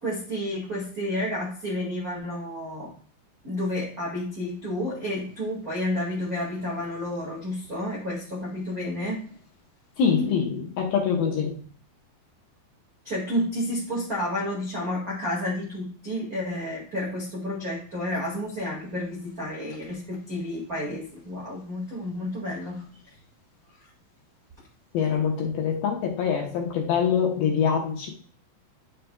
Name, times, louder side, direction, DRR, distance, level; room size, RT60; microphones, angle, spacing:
voice 1, 0.0-2.9 3.4-9.2 13.0-22.8, left 1 dB, 85° right, -6 dB, 0.7 m, -30 dB
voice 2, 10.0-11.6 24.9-28.1, left 7 dB, 70° left, 0 dB, 2.4 m, -24 dB
9.4 x 6.6 x 2.3 m, 0.43 s
omnidirectional pair, 5.4 m